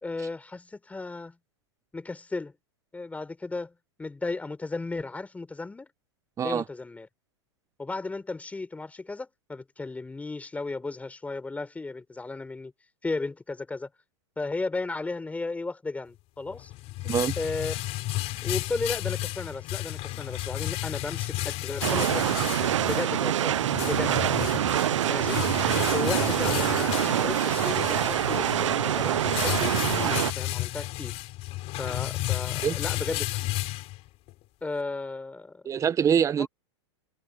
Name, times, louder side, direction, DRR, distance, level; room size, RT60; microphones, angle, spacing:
voice 1, 0.0-1.4 1.9-2.5 2.9-3.7 4.0-5.9 6.4-7.1 7.8-12.7 13.0-13.9 14.4-16.7 17.4-17.8 18.4-24.1 25.1-25.4 25.9-31.2 31.8-33.4 34.6-35.6 36.4-36.5, left 3 dB, 10° left, 4.9 m, -34 dB
sound 1, 16.5-34.3, left 18 dB, 40° left, 3.8 m, -32 dB
sound 2, 21.8-30.3, right 11 dB, 85° right, 0.6 m, -25 dB
voice 2, 35.6-36.5, right 8 dB, 20° right, 0.8 m, -24 dB
hypercardioid pair, 120°, 15 cm